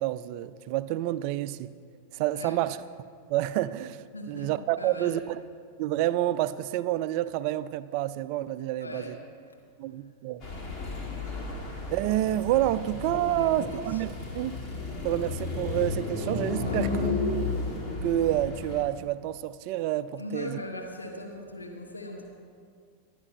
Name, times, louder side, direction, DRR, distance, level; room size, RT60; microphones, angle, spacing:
voice 1, 0.0-1.7 2.1-2.8 3.3-5.4 5.8-9.2 9.8-10.4 11.9-14.5 15.0-17.5 18.0-20.6, right 14 dB, 45° right, 15 dB, 0.3 m, -28 dB
voice 2, 4.1-5.2 8.8-9.2 9.4-9.6 12.8-14.0 16.6-16.9 20.2-22.3, left 1 dB, 80° left, 0 dB, 1.5 m, -40 dB
sound 1, 10.4-18.8, left 3 dB, 30° left, 2.0 m, -33 dB
22.0 x 10.5 x 2.2 m, 2.1 s
figure-of-eight pair, 90°, 0 cm